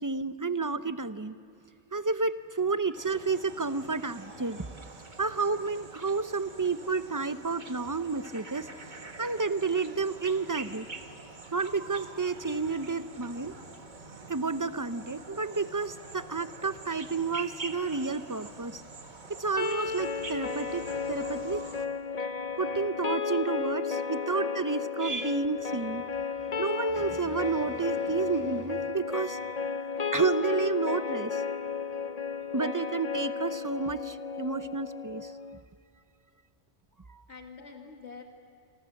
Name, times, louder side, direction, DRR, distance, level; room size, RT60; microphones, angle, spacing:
voice 1, 0.0-1.4 1.9-4.7 5.2-8.7 9.2-10.9 11.5-13.5 14.3-18.8 19.3-21.6 22.6-26.0 26.6-29.4 30.1-31.4 32.5-35.3 37.1-37.2, right 4 dB, 20° right, 12 dB, 0.5 m, -30 dB
sound 1, 2.9-21.9, right 3 dB, 40° right, 1.5 m, -46 dB
sound 2, 19.6-35.6, left 5 dB, 40° left, 0.8 m, -33 dB
voice 2, 37.3-38.2, left 4 dB, 65° left, 2 dB, 2.2 m, -47 dB
29.0 x 25.0 x 7.7 m, 2.6 s
omnidirectional pair, 1.2 m